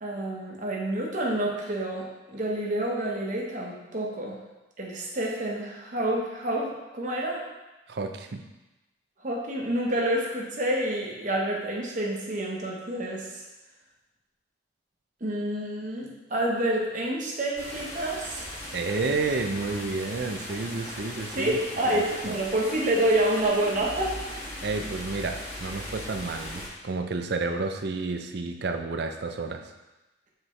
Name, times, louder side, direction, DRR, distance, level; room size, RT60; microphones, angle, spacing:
voice 1, 0.0-4.4 4.8-7.5 9.2-13.4 15.2-18.4 21.3-24.4, right 1 dB, 45° right, -2 dB, 1.2 m, -28 dB
voice 2, 7.9-8.4 18.7-21.6 21.9-22.3 24.6-29.6, right 3 dB, 60° right, 6 dB, 0.5 m, -30 dB
sound 1, 17.5-26.7, left 1 dB, 15° left, 1.6 m, -38 dB
7.7 x 4.5 x 3.2 m, 1.1 s
head